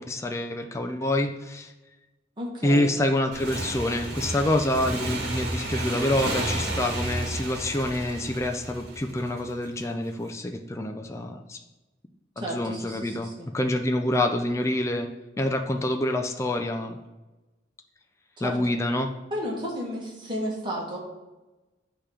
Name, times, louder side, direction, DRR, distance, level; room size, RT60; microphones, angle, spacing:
voice 1, 0.0-1.7 2.6-11.6 12.4-15.1 15.4-17.0 18.4-19.1, left 1 dB, 15° left, 4 dB, 0.3 m, -27 dB
voice 2, 2.4-2.9 12.4-13.5 18.4-18.6 19.3-21.0, equal, 25° right, -3 dB, 1.4 m, -33 dB
Motorcycle / Engine, 3.3-9.7, right 1 dB, 60° right, 1.4 m, -32 dB
8.5 x 3.0 x 4.9 m, 1.1 s
head